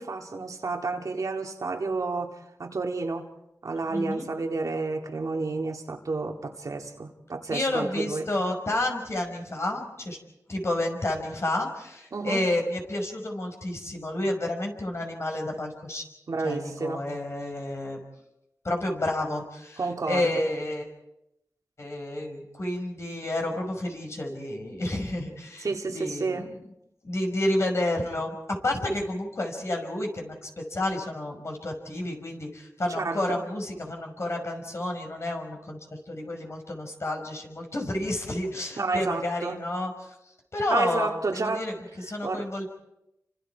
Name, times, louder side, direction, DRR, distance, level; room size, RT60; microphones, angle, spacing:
voice 1, 0.0-3.3 3.6-8.3 12.1-12.4 16.3-17.0 19.8-20.4 25.6-26.5 32.9-33.4 38.8-39.6 40.7-41.7 42.2-42.5, right 3 dB, 70° right, 2 dB, 2.3 m, -30 dB
voice 2, 3.9-4.3 7.5-10.2 10.5-16.0 16.4-18.0 18.6-19.8 20.1-20.9 21.8-26.5 27.0-28.4 28.6-40.1 40.5-41.8 42.1-42.7, left 1 dB, 50° left, 2 dB, 5.8 m, -30 dB
30.0 x 25.5 x 4.7 m, 0.87 s
wide cardioid pair, 85°, 6 cm